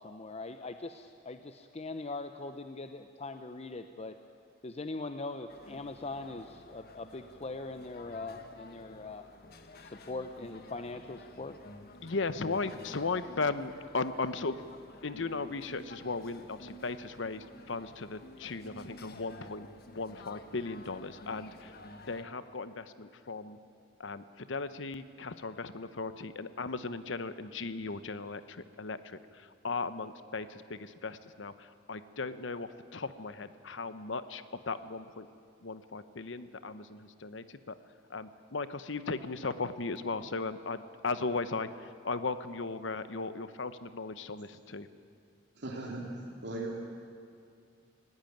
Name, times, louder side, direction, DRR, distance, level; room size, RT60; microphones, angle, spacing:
voice 1, 0.0-4.1 4.6-9.2 9.8-11.6, left 3 dB, 35° left, 8 dB, 0.7 m, -41 dB
sound 1, 5.5-22.2, left 1 dB, 55° left, 1.4 m, -51 dB
voice 2, 12.0-14.6 15.0-21.7 22.0-23.6 24.0-35.3 35.6-37.8 38.1-44.9, left 3 dB, 70° left, 12 dB, 1.0 m, -37 dB
voice 3, 45.5-46.0 46.4-46.7, right 2 dB, 60° right, -3 dB, 2.9 m, -37 dB
19.5 x 17.0 x 9.3 m, 2.4 s
head